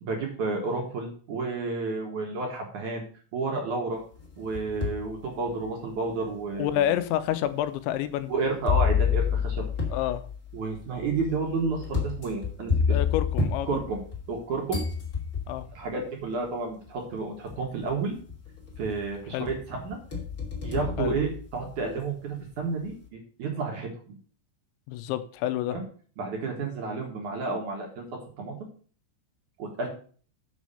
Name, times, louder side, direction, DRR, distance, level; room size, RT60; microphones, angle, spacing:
voice 1, 0.0-3.0 3.3-4.0 4.4-6.9 8.3-9.7 10.5-13.0 13.7-14.0 14.3-14.8 15.7-18.1 18.8-20.0 20.6-24.2 25.7-25.8 26.2-28.1 28.4-28.5 29.6-29.9, right 4 dB, 55° right, 1 dB, 2.6 m, -31 dB
sound 1, 4.2-5.1 5.7-5.8 6.7-6.8 8.7-14.4 14.7-15.7 16.9-17.0 17.5-17.9 18.3-19.1 19.5-21.8, left 6 dB, 25° left, 2.3 m, -29 dB
voice 2, 6.6-8.3 9.9-10.2 12.9-13.7 15.5-15.7 19.3-19.5 21.0-21.1 24.9-25.8, left 12 dB, 90° left, 11 dB, 3.0 m, -28 dB
7.3 x 6.3 x 6.8 m, 0.43 s
omnidirectional pair, 5.3 m